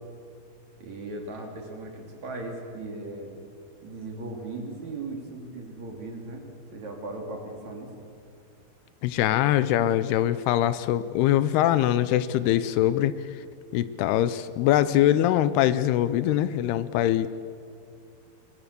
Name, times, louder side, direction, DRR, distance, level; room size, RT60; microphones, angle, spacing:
voice 1, 0.8-3.3 3.8-6.5 6.7-7.9 11.1-11.2, right 2 dB, 45° right, 1 dB, 4.0 m, -37 dB
voice 2, 9.0-13.1 13.7-17.3, left 12 dB, 80° left, 14 dB, 2.7 m, -23 dB
26.5 x 23.5 x 6.9 m, 2.3 s
omnidirectional pair, 4.7 m